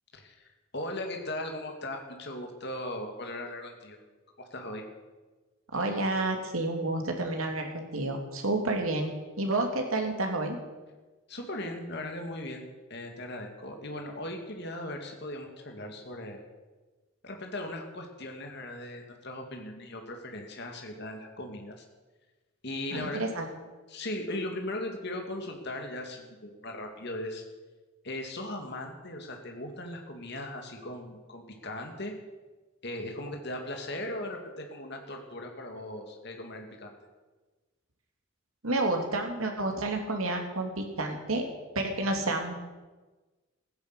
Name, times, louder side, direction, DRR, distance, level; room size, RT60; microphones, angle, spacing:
voice 1, 0.1-4.0 4.4-4.8 11.3-16.4 17.2-21.8 22.6-23.2 23.9-27.4 28.0-32.1 32.8-36.9, left 1 dB, 55° left, 3 dB, 2.3 m, -38 dB
voice 2, 5.7-9.1 9.4-10.6 22.9-23.5 38.6-41.5 41.7-42.5, right 2 dB, 85° right, 3 dB, 2.7 m, -30 dB
16.0 x 10.5 x 8.2 m, 1.2 s
head